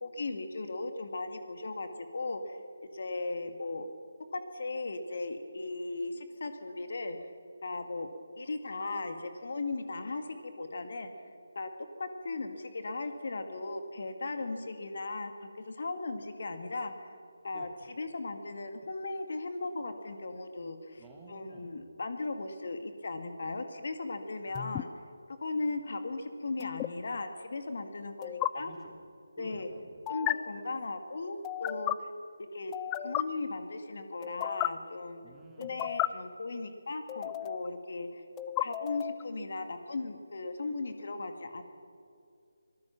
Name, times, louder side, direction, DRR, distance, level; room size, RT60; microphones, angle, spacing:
voice 1, 0.0-2.6 2.9-3.9 4.3-7.2 7.6-8.1 8.4-11.1 11.6-11.7 12.0-17.2 17.4-21.0 21.3-24.9 25.4-28.7 29.4-29.7 30.1-32.1 32.5-32.7 33.0-35.2 35.6-38.2 38.6-41.6, left 3 dB, 50° left, 7 dB, 2.0 m, -37 dB
voice 2, 21.0-21.8 24.4-24.8 28.5-29.0 29.4-30.0 35.2-35.9, right 3 dB, 10° right, 0 dB, 2.5 m, -52 dB
sound 1, 24.6-24.8 26.6-26.9 28.2-28.5 30.1-30.3 31.4-32.0 32.7-33.2 34.2-34.7 35.6-36.1 37.1-37.7 38.4-39.2, left 17 dB, 15° left, 0.4 m, -33 dB
25.5 x 19.5 x 6.1 m, 2.4 s
figure-of-eight pair, 155°, 0 cm